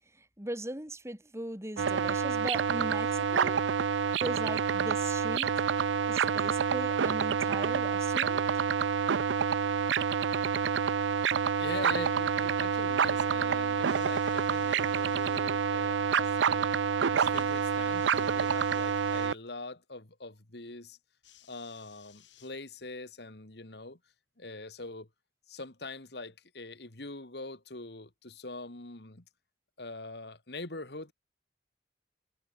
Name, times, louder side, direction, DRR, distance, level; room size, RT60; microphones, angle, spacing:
voice 1, 0.2-3.6 4.2-5.5 6.0-8.5, right 1 dB, 15° right, 2.8 m, -39 dB
sound 1, 1.8-19.3, right 6 dB, 90° right, 0.5 m, -28 dB
voice 2, 11.6-16.8 17.1-21.0 21.5-24.0 24.4-25.1 25.5-29.2 29.8-31.1, left 2 dB, 60° left, 2.2 m, -43 dB
sound 2, 13.8-15.4 17.3-19.4 21.2-22.9 23.9-24.0, left 12 dB, 85° left, 7.1 m, -60 dB
head